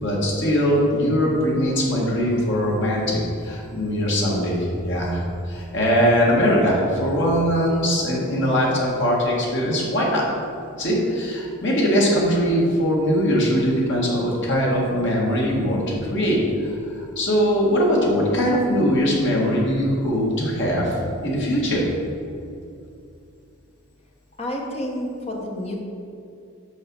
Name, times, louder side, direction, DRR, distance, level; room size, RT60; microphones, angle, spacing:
voice 1, 0.0-10.3 10.8-21.0 21.2-21.8, equal, 55° left, -4 dB, 1.8 m, -21 dB
voice 2, 24.4-25.8, left 1 dB, 30° left, -1 dB, 1.1 m, -29 dB
6.6 x 4.7 x 6.2 m, 2.6 s
head